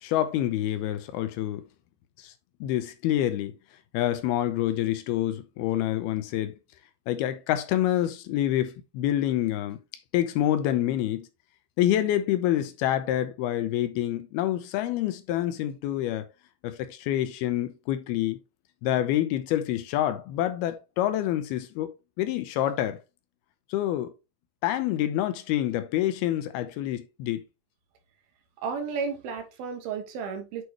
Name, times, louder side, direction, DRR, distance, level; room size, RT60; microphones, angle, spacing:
voice 1, 0.0-1.6 2.2-2.3 2.6-3.5 3.9-6.5 7.1-9.8 10.1-11.3 11.8-16.3 16.6-18.4 18.8-21.9 22.2-23.0 23.7-24.1 24.6-27.4, left 12 dB, 85° left, 2.6 m, -27 dB
voice 2, 28.6-30.6, right 5 dB, 75° right, 3.1 m, -33 dB
8.3 x 4.7 x 3.1 m
omnidirectional pair, 4.6 m